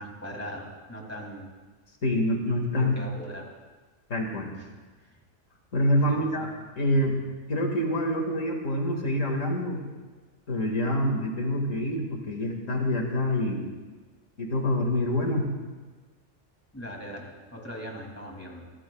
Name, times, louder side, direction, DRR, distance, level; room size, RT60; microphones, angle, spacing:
voice 1, 0.0-1.5 2.7-3.5 4.5-4.7 5.0-5.1 6.1-6.5 16.7-18.7, equal, 10° left, -1 dB, 2.6 m, -40 dB
voice 2, 2.0-2.9 4.1-4.5 5.7-6.5 6.8-7.1 7.5-9.8 10.5-13.7 14.4-15.5, left 1 dB, 90° left, 1 dB, 2.4 m, -26 dB
23.5 x 16.5 x 2.3 m, 1.3 s
omnidirectional pair, 1.3 m